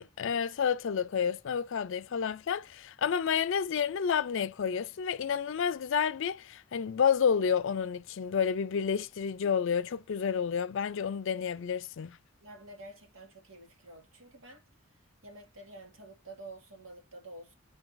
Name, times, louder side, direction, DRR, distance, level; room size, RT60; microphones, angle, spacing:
voice 1, 0.0-12.2, left 7 dB, 65° left, 0.4 m, -30 dB
voice 2, 12.4-17.5, right 2 dB, 75° right, 1.9 m, -50 dB
5.1 x 2.5 x 3.8 m
head